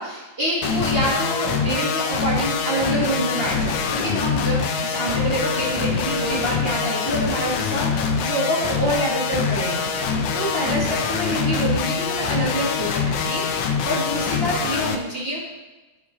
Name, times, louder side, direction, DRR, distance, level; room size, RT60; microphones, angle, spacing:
voice 1, 0.0-15.4, right 1 dB, 55° right, -6 dB, 0.6 m, -26 dB
sound 1, 0.6-14.9, left 5 dB, 85° left, 1.3 m, -24 dB
9.7 x 6.5 x 3.8 m, 1.2 s
omnidirectional pair, 3.6 m